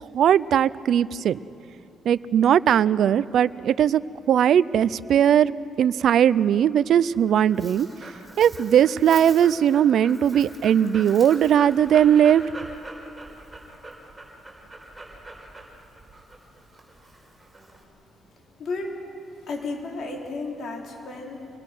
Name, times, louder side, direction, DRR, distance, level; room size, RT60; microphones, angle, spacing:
voice 1, 0.1-1.4 2.1-4.0 4.3-5.5 5.8-7.9 8.4-12.4, right 9 dB, 70° right, 17 dB, 0.5 m, -19 dB
Dog, 7.0-17.8, right 2 dB, 15° right, 5.5 m, -43 dB
voice 2, 18.6-18.9 19.5-21.5, left 3 dB, 60° left, 0 dB, 4.3 m, -33 dB
27.0 x 20.5 x 6.2 m, 2.8 s
cardioid pair, 90°, 0 cm